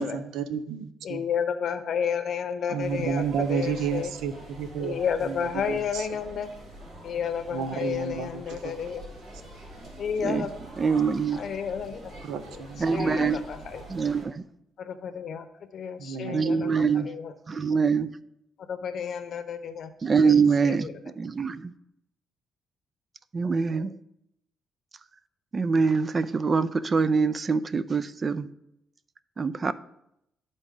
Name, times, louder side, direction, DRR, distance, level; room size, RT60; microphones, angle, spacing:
voice 1, 0.0-1.2 2.7-6.1 7.5-8.7 12.2-13.1 16.0-16.4, right 6 dB, 90° right, 11 dB, 0.5 m, -32 dB
voice 2, 1.0-4.1 4.8-6.5 7.0-9.0 10.0-10.5 11.3-12.0 12.5-13.8 14.8-15.5 15.7-17.3 18.7-19.9 20.2-20.9, left 7 dB, 60° left, 10 dB, 0.7 m, -31 dB
sound 1, 2.8-14.2, right 1 dB, 60° right, 2.4 m, -45 dB
voice 3, 10.8-11.4 12.8-13.4 13.9-14.4 16.3-17.1 17.5-18.2 20.0-20.9 21.2-21.7 23.3-23.9 25.5-28.5 29.4-29.7, right 5 dB, 35° right, 15 dB, 0.3 m, -24 dB
11.5 x 3.9 x 3.7 m, 0.81 s
cardioid pair, 90°, 0 cm